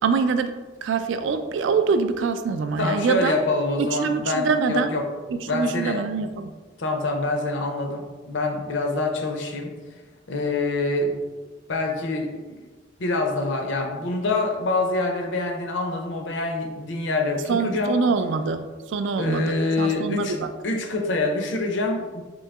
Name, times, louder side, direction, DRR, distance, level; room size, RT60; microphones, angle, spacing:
voice 1, 0.0-3.4 3.8-5.0 5.3-6.6 17.5-20.5, right 5 dB, 70° right, 9 dB, 0.3 m, -24 dB
voice 2, 2.8-5.0 5.5-6.0 6.8-9.7 10.3-11.2 11.7-12.6 13.0-18.0 19.2-20.4 20.6-22.2, left 2 dB, 70° left, 3 dB, 0.6 m, -25 dB
3.8 x 2.7 x 3.4 m, 1.3 s
head